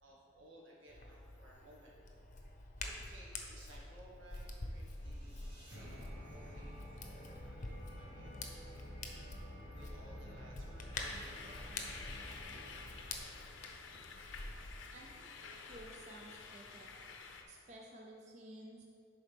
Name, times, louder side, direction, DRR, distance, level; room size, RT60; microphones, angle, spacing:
voice 1, 0.0-1.9 2.6-12.8 13.3-14.5, right 1 dB, 85° right, -4 dB, 1.6 m, -60 dB
Hands, 0.9-14.9, left 2 dB, 40° left, 0.7 m, -48 dB
sound 1, 4.7-13.8, equal, 65° right, 1.6 m, -51 dB
sound 2, 10.9-17.4, left 4 dB, 80° left, 0.6 m, -51 dB
voice 2, 14.9-16.9 17.5-18.8, right 1 dB, 35° right, -1 dB, 0.5 m, -54 dB
10.5 x 4.1 x 3.4 m, 2.5 s
head